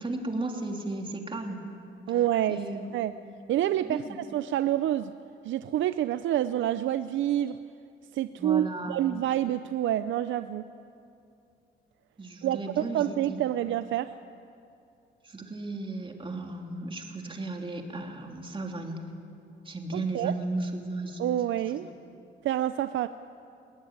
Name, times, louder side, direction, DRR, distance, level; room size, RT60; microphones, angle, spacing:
voice 1, 0.0-1.6 2.5-2.9 3.8-4.2 8.4-9.0 12.2-13.5 15.2-19.0 19.6-21.2 21.7-21.9, right 2 dB, 25° right, 2 dB, 3.2 m, -35 dB
voice 2, 2.1-3.1 3.5-5.1 5.4-7.6 8.1-10.6 12.4-14.1 19.9-20.3 21.2-21.8 22.4-23.1, right 12 dB, 75° right, 12 dB, 0.6 m, -28 dB
21.0 x 18.0 x 9.6 m, 2.6 s
cardioid pair, 90°, 20 cm